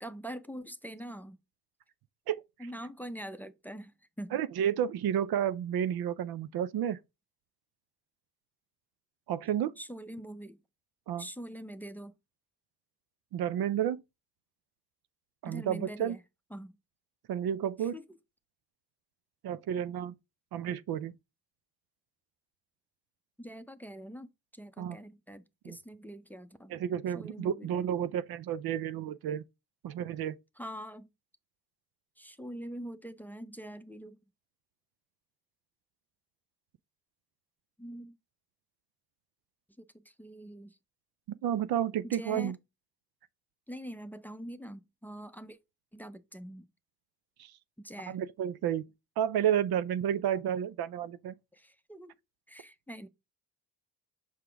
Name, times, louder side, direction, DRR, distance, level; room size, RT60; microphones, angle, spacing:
voice 1, 0.0-1.4 2.6-4.4 9.8-10.6 11.2-12.1 15.4-16.2 16.5-16.8 17.8-18.1 23.4-26.7 27.1-27.9 30.6-31.1 32.2-34.2 37.8-38.2 39.8-40.8 42.0-42.6 43.7-45.6 45.9-46.7 47.8-48.2 51.5-52.1 52.5-53.1, right 1 dB, 5° left, 0.6 m, -44 dB
voice 2, 4.3-7.0 9.3-9.8 11.1-11.2 13.3-14.0 15.4-16.1 17.3-17.9 19.4-20.1 20.5-21.1 24.8-25.0 25.7-25.8 26.7-29.4 29.8-30.4 41.4-42.5 47.4-47.5 48.1-48.9 49.2-51.3, right 9 dB, 65° right, 0.5 m, -31 dB
5.8 x 4.8 x 3.4 m
supercardioid pair, 60°, 41 cm